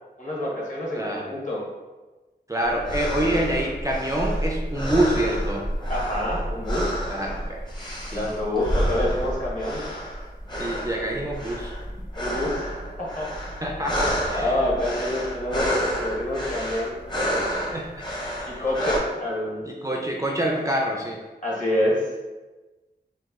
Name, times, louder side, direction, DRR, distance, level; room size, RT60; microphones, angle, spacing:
voice 1, 0.2-1.6 5.9-7.0 8.1-9.8 12.2-13.3 14.3-17.0 18.5-19.7 21.4-22.0, left 1 dB, 45° left, -5 dB, 1.1 m, -27 dB
voice 2, 0.9-1.3 2.5-5.7 7.1-7.7 8.1-8.3 10.6-11.7 13.6-14.6 17.5-18.0 18.4-18.6 19.6-21.2, right 1 dB, 20° right, -1 dB, 0.4 m, -26 dB
sound 1, 2.6-19.0, equal, 25° left, 0.8 m, -29 dB
3.0 x 2.2 x 3.5 m, 1.2 s
wide cardioid pair, 65°, 18 cm